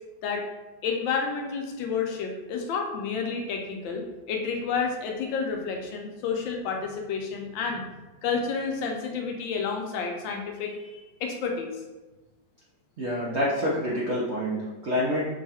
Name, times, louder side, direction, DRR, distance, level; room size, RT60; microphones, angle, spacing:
voice 1, 0.8-7.8 8.2-11.8, left 5 dB, 85° left, 2 dB, 1.4 m, -30 dB
voice 2, 13.0-15.3, left 1 dB, 60° right, -6 dB, 0.7 m, -27 dB
5.0 x 2.3 x 4.1 m, 1.1 s
omnidirectional pair, 2.1 m